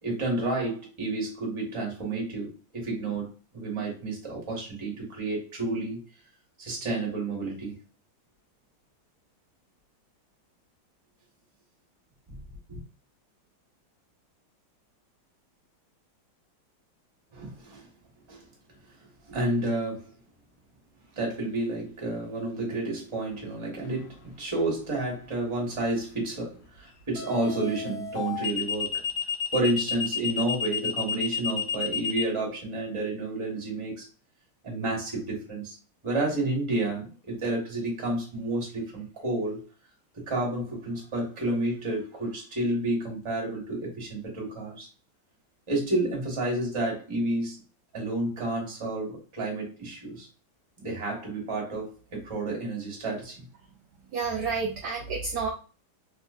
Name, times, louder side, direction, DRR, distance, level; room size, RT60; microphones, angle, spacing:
voice 1, 0.0-6.0 6.6-7.8 12.3-12.4 12.7-12.8 17.3-17.9 18.3-18.4 19.3-20.1 21.1-29.0 29.5-34.1 34.6-35.8 36.0-39.6 40.1-44.9 45.7-47.6 47.9-50.3 50.8-53.4, right 2 dB, 20° right, 0.9 m, -30 dB
sound 1, 23.9-24.2 27.2-32.2, left 7 dB, 75° left, 1.4 m, -30 dB
voice 2, 54.1-55.5, right 5 dB, 75° right, 0.9 m, -30 dB
3.4 x 3.1 x 2.4 m
omnidirectional pair, 2.3 m